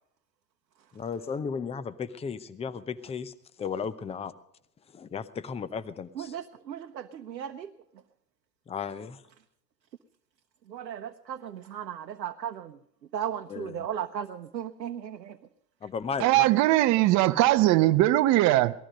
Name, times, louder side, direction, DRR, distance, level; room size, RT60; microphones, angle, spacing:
voice 1, 0.9-4.3 4.9-6.3 8.7-9.2 13.5-13.9 15.8-16.5, left 6 dB, 10° left, 0.7 m, -35 dB
voice 2, 6.2-7.7 10.7-12.8 13.1-15.4, right 9 dB, 85° right, 0.9 m, -36 dB
voice 3, 16.2-18.7, right 16 dB, 35° right, 0.8 m, -20 dB
18.5 x 13.5 x 5.1 m
hypercardioid pair, 100°, 49 cm